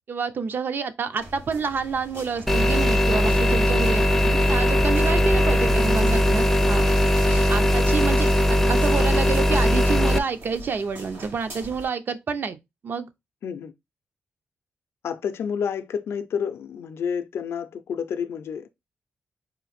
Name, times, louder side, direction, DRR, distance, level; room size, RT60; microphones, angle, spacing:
voice 1, 0.1-6.8 7.5-12.6 12.8-13.1, right 5 dB, 50° right, 0.5 m, -28 dB
sound 1, 1.2-11.9, right 1 dB, 70° right, 2.4 m, -42 dB
sound 2, 2.5-10.2, left 1 dB, 5° left, 0.4 m, -19 dB
voice 2, 13.4-13.7 15.0-18.7, left 7 dB, 75° left, 0.4 m, -29 dB
3.8 x 2.5 x 4.1 m
wide cardioid pair, 125°, 4 cm